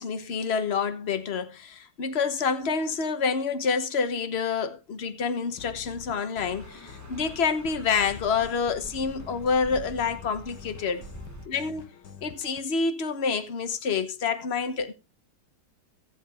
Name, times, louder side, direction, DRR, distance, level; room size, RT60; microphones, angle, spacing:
voice 1, 0.0-11.0 11.5-11.9 12.2-14.9, left 5 dB, 40° left, 1.3 m, -28 dB
sound 1, 5.4-12.6, left 8 dB, 85° left, 1.8 m, -46 dB
sound 2, 6.5-11.5, right 2 dB, 15° right, 0.9 m, -46 dB
16.0 x 7.9 x 3.4 m
omnidirectional pair, 1.8 m